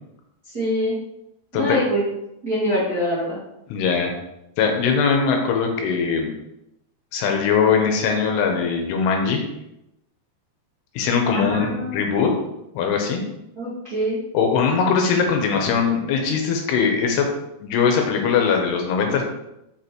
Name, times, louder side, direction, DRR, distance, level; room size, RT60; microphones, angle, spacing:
voice 1, 0.4-1.0 1.5-2.0 2.4-3.4 11.3-12.0 13.6-14.2, equal, 55° right, -10 dB, 1.0 m, -24 dB
voice 2, 3.7-4.1 4.6-6.3 7.1-9.4 11.0-12.3 12.7-13.2 14.3-17.3 17.6-19.3, left 6 dB, 80° left, 2 dB, 2.8 m, -21 dB
6.2 x 5.5 x 2.9 m, 0.85 s
omnidirectional pair, 4.9 m